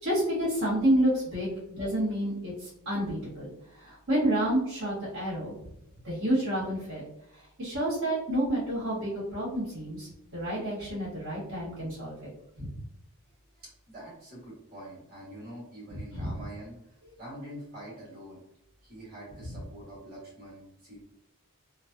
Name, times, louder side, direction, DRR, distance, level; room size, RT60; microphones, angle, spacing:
voice 1, 0.0-3.5 3.8-5.5 6.0-7.0 7.6-12.2 12.6-12.8 15.9-16.3 19.5-19.6, right 1 dB, 65° right, -8 dB, 1.3 m, -29 dB
voice 2, 13.6-18.4 18.8-21.0, right 1 dB, 45° right, -5 dB, 1.4 m, -45 dB
3.1 x 2.1 x 2.6 m, 0.82 s
head